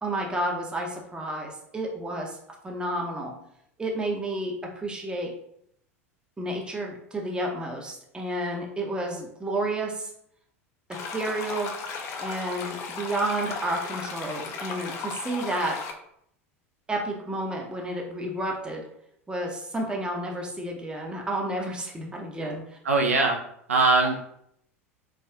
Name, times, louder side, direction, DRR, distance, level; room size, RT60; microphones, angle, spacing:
voice 1, 0.0-2.4 2.6-3.4 3.8-5.3 6.4-10.1 10.9-11.7 12.2-15.8 16.9-18.8 19.3-22.8, right 1 dB, 10° right, 0 dB, 0.6 m, -31 dB
sound 1, 10.9-15.9, left 4 dB, 40° left, 0.5 m, -35 dB
voice 2, 22.9-23.4 23.7-24.2, right 3 dB, 75° right, 1 dB, 0.5 m, -21 dB
3.5 x 2.3 x 2.2 m, 0.72 s
figure-of-eight pair, 80°, 8 cm